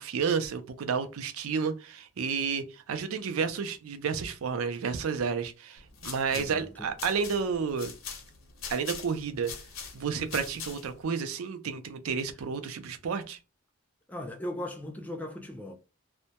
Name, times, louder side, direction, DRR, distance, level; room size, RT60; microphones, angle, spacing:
voice 1, 0.0-7.9 8.7-9.5 9.9-13.4, right 6 dB, 80° right, 0.4 m, -31 dB
sound 1, 5.8-11.0, left 5 dB, 70° left, 0.6 m, -43 dB
voice 2, 6.3-6.9 14.1-15.7, left 1 dB, 10° left, 0.3 m, -38 dB
2.1 x 2.1 x 2.7 m
head